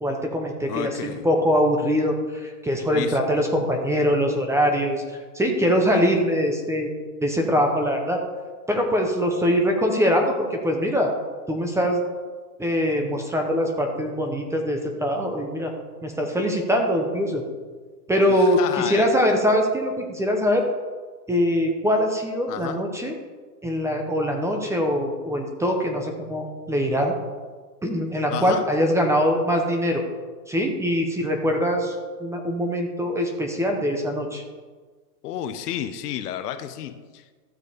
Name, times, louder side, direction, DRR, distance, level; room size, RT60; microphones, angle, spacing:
voice 1, 0.0-6.9 7.2-8.2 8.7-11.1 11.5-12.0 12.6-15.7 16.0-17.4 18.1-20.7 21.3-23.1 23.6-27.1 27.8-30.0 30.5-34.4, equal, 5° right, 3 dB, 0.9 m, -23 dB
voice 2, 0.7-1.2 2.9-3.4 9.5-9.6 18.3-19.1 22.5-22.8 28.3-28.7 35.2-37.3, left 10 dB, 65° left, 10 dB, 1.1 m, -32 dB
14.0 x 6.6 x 5.0 m, 1.4 s
hypercardioid pair, 140°, 50 cm